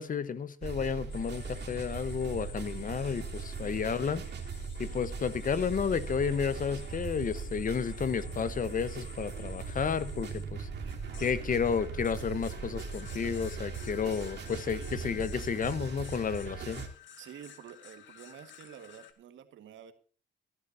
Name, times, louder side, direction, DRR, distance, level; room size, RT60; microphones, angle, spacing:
voice 1, 0.0-4.2 4.8-10.7 11.2-16.9, left 6 dB, 45° left, 15 dB, 1.2 m, -32 dB
sound 1, 0.6-16.9, right 5 dB, 60° right, 3.2 m, -39 dB
sound 2, 1.1-19.1, left 8 dB, 70° left, 1.9 m, -53 dB
voice 2, 3.6-4.0 10.8-11.3 14.5-15.1 17.2-19.9, right 9 dB, 75° right, 8 dB, 1.8 m, -50 dB
15.5 x 11.5 x 2.8 m, 0.42 s
cardioid pair, 90°, 20 cm